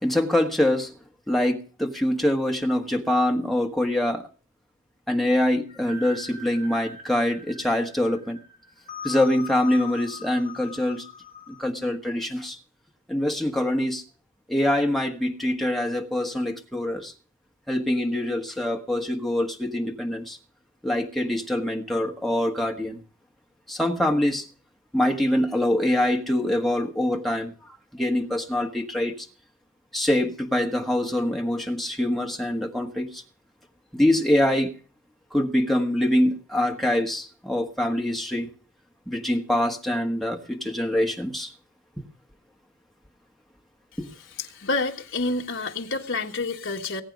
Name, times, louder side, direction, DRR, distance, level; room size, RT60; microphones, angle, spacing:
voice 1, 0.0-0.9 1.3-4.2 5.1-8.4 9.0-11.0 11.5-12.6 13.1-14.0 14.5-17.1 17.7-20.4 20.8-23.0 23.7-24.4 24.9-27.5 27.9-29.3 29.9-33.2 33.9-34.7 35.3-38.5 39.1-41.5 42.0-42.1 44.0-44.1, left 1 dB, ahead, 1.4 m, -24 dB
sound 1, 5.7-11.7, left 5 dB, 25° left, 4.2 m, -41 dB
voice 2, 44.4-47.0, left 3 dB, 55° left, 1.6 m, -28 dB
20.5 x 8.7 x 5.3 m
head